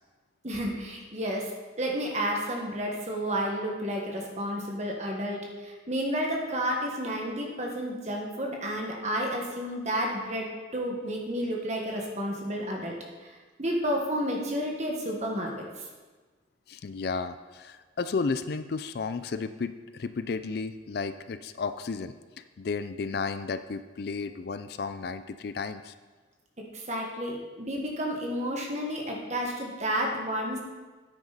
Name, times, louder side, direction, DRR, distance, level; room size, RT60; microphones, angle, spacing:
voice 1, 0.4-1.5 1.8-13.0 13.6-15.9 26.7-30.6, equal, 35° right, 0 dB, 1.6 m, -31 dB
voice 2, 16.7-25.9, left 4 dB, 55° left, 11 dB, 0.4 m, -33 dB
9.7 x 8.8 x 4.2 m, 1.3 s
head